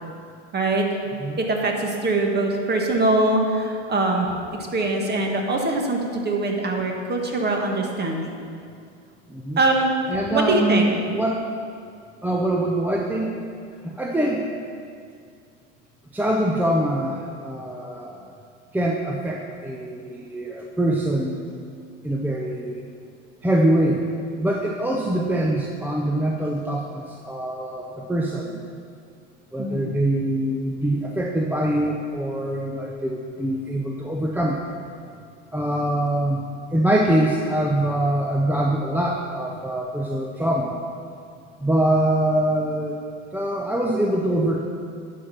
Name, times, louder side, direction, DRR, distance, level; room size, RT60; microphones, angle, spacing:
voice 1, 0.5-0.8 1.4-4.3 4.7-8.3 9.6-9.9 10.3-10.9 29.6-29.9, right 2 dB, 25° right, 1 dB, 1.6 m, -22 dB
voice 2, 9.3-9.6 10.1-11.4 12.2-13.3 13.8-14.5 16.1-18.3 18.7-21.6 22.0-22.8 23.4-24.0 24.4-28.6 29.5-34.6 35.5-36.4 36.7-40.8 41.6-43.0 43.3-44.6, right 1 dB, 5° right, -1 dB, 0.7 m, -24 dB
11.0 x 5.3 x 5.8 m, 2.3 s
hypercardioid pair, 95°, 37 cm